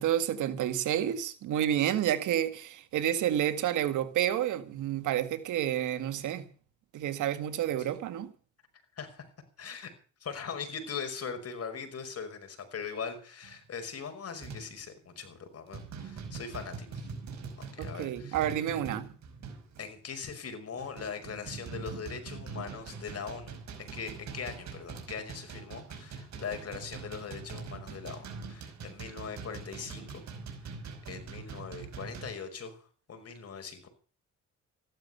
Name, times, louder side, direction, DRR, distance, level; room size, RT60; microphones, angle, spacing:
voice 1, 0.0-6.4 6.9-8.3 17.8-19.1, right 11 dB, 85° right, 2.0 m, -30 dB
voice 2, 9.6-9.9 10.2-17.0 17.6-18.5 19.8-30.2 30.6-30.7 31.1-33.9, left 6 dB, 50° left, 5.5 m, -41 dB
sound 1, 13.4-13.7 14.4-14.8 15.2-15.4 15.7-19.9 20.4-32.3, right 5 dB, 65° right, 5.2 m, -43 dB
15.0 x 12.5 x 6.9 m
cardioid pair, 90°, 30 cm